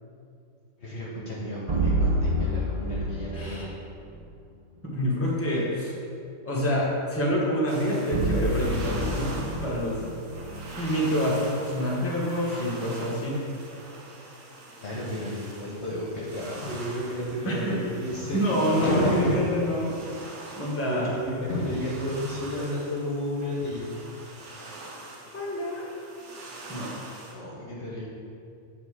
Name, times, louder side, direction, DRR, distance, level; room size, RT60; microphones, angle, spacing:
voice 1, 0.8-3.7 5.5-5.6 14.8-19.4 20.8-23.9 27.3-28.1, left 1 dB, 55° left, -4 dB, 1.2 m, -31 dB
sound 1, 1.7-3.9 8.1-11.3, right 1 dB, 35° right, 0.6 m, -28 dB
voice 2, 3.3-3.7 4.8-5.9 6.4-10.0 10.8-13.4 17.4-17.8 18.3-19.9 20.6-21.1 25.3-25.9 26.7-26.9, equal, 10° left, -5 dB, 1.2 m, -27 dB
sound 2, 7.7-27.3, right 2 dB, 70° right, 1.4 m, -43 dB
7.9 x 4.2 x 4.8 m, 2.5 s
omnidirectional pair, 1.5 m